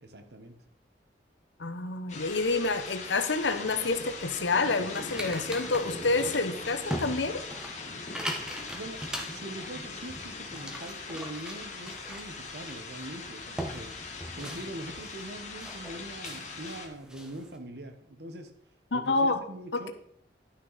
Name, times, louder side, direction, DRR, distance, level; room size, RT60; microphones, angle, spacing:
voice 1, 0.0-0.6 8.6-13.9 14.3-18.5 18.9-19.9, right 1 dB, 65° right, 7 dB, 1.1 m, -43 dB
voice 2, 1.6-7.4 18.9-19.4 19.7-19.9, left 3 dB, 85° left, 10 dB, 0.9 m, -28 dB
sound 1, 2.1-16.9, left 4 dB, 40° left, 1.4 m, -41 dB
sound 2, 3.1-17.6, equal, 5° right, 1.0 m, -42 dB
11.0 x 6.2 x 4.0 m, 0.71 s
head